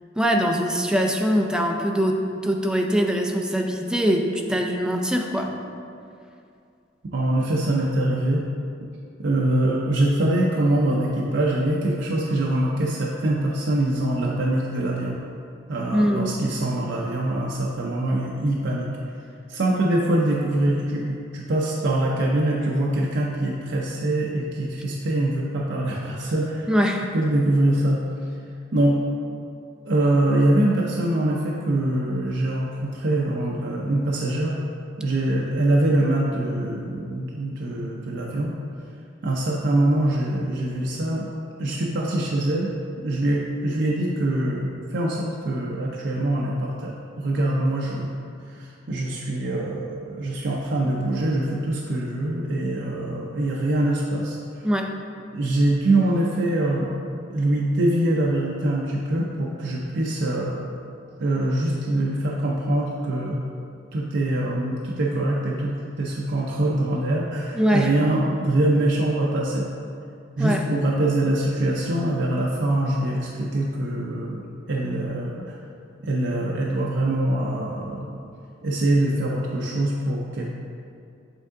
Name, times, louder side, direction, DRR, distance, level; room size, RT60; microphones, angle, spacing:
voice 1, 0.2-5.5 15.9-16.4 26.7-27.1 54.6-54.9 67.5-67.9 70.4-70.6, equal, 5° right, 2 dB, 0.4 m, -22 dB
voice 2, 7.1-8.5 9.2-15.2 15.7-18.9 19.5-26.7 27.1-28.0 28.7-29.0 29.8-34.6 35.0-38.6 39.2-41.3 41.6-42.7 43.0-48.1 48.5-54.4 55.3-56.9 57.3-60.6 61.2-63.4 63.9-69.6 70.4-74.4 74.7-75.6 76.0-78.2 78.6-80.5, right 1 dB, 65° right, -3 dB, 0.5 m, -24 dB
8.1 x 3.7 x 3.6 m, 2.4 s
head